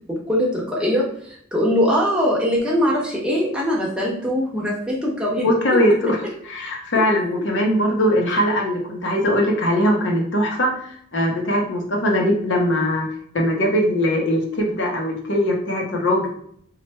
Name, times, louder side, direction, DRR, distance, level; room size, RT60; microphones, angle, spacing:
voice 1, 0.1-5.4, equal, 5° right, -5 dB, 0.8 m, -21 dB
voice 2, 5.4-6.2 6.4-13.1 13.3-16.3, equal, 65° left, 0 dB, 0.8 m, -20 dB
3.1 x 2.4 x 4.3 m, 0.65 s
head